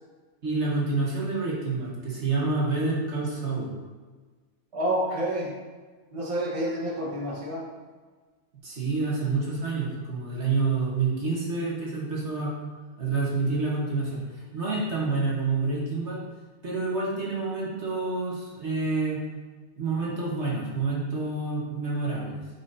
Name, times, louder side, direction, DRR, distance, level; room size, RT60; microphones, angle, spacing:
voice 1, 0.4-3.7 8.6-12.5 13.0-14.2 14.5-16.2 16.6-19.2 19.8-22.4, right 3 dB, 55° right, -5 dB, 1.7 m, -28 dB
voice 2, 4.7-5.5 6.1-7.6, right 1 dB, 25° right, -4 dB, 1.2 m, -28 dB
8.8 x 5.8 x 2.7 m, 1.4 s
omnidirectional pair, 1.4 m